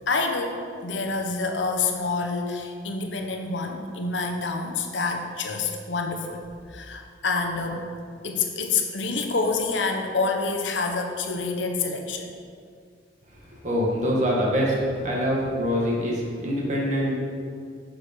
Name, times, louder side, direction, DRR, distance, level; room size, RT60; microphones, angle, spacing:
voice 1, 0.1-6.4 6.7-7.9 8.2-12.3, left 4 dB, 90° left, 4 dB, 1.0 m, -27 dB
voice 2, 13.6-17.2, equal, 40° right, -3 dB, 1.9 m, -24 dB
9.4 x 6.4 x 4.4 m, 2.2 s
head